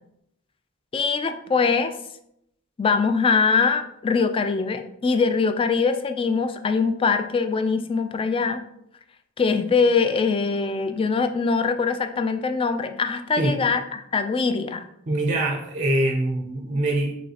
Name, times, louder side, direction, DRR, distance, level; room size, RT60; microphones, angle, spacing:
voice 1, 0.9-1.9 2.8-8.7 9.4-14.8, left 5 dB, 25° left, 8 dB, 0.3 m, -22 dB
voice 2, 15.1-17.1, right 1 dB, 35° right, 3 dB, 0.5 m, -23 dB
5.3 x 3.1 x 2.8 m, 0.76 s
head